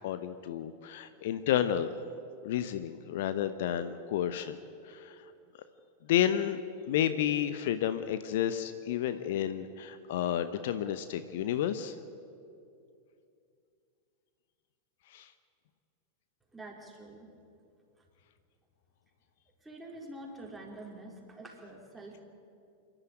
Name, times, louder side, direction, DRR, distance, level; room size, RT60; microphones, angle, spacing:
voice 1, 0.0-1.9 2.4-4.6 4.9-5.2 6.1-6.6 6.9-11.9 15.1-15.3, left 10 dB, 55° left, 11 dB, 0.8 m, -31 dB
voice 2, 16.5-17.3 18.0-18.1 19.6-22.2, right 1 dB, 10° right, -2 dB, 4.4 m, -46 dB
27.0 x 12.0 x 9.1 m, 2.5 s
figure-of-eight pair, 90°, 0 cm